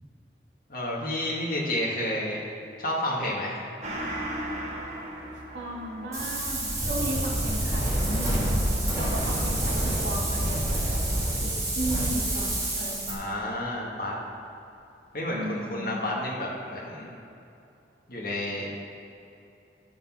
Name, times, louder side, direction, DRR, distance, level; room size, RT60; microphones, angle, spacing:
voice 1, 0.7-2.4 2.8-3.6 9.0-9.2 13.1-14.1 15.1-17.1 18.1-18.8, left 1 dB, 50° left, -4 dB, 1.6 m, -30 dB
Gong, 3.8-12.8 13.1-13.2, right 1 dB, 40° right, 1.7 m, -41 dB
voice 2, 5.5-8.6 9.0-13.3 15.3-16.0, right 1 dB, 75° right, -3 dB, 2.4 m, -35 dB
Wind, 6.1-13.1, right 1 dB, 20° right, 2.2 m, -27 dB
10.5 x 6.0 x 5.8 m, 2.7 s
head